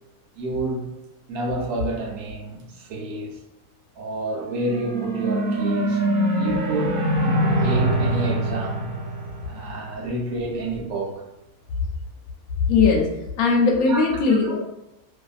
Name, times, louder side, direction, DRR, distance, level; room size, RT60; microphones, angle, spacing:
voice 1, 0.3-0.9 1.3-3.4 4.0-6.0 6.3-8.9 9.5-11.2 13.9-14.5, right 2 dB, 70° right, -2 dB, 1.1 m, -29 dB
sound 1, 4.5-10.1, right 1 dB, 55° right, 0.7 m, -24 dB
voice 2, 12.7-13.0 13.4-14.6, left 4 dB, 70° left, -1 dB, 1.0 m, -18 dB
2.7 x 2.5 x 2.4 m, 0.89 s
omnidirectional pair, 1.6 m